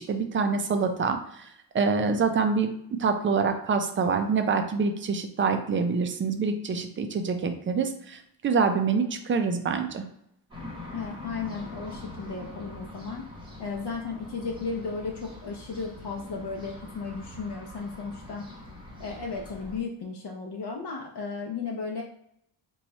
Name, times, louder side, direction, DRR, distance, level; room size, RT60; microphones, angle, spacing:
voice 1, 0.0-2.7 3.0-10.0, right 5 dB, 30° right, 7 dB, 0.3 m, -26 dB
sound 1, 10.5-19.8, left 2 dB, 10° right, 0.8 m, -43 dB
voice 2, 10.9-13.3 13.6-18.5 19.0-22.0, left 4 dB, 65° left, 0 dB, 0.6 m, -35 dB
3.0 x 2.3 x 4.0 m, 0.73 s
wide cardioid pair, 145°, 44 cm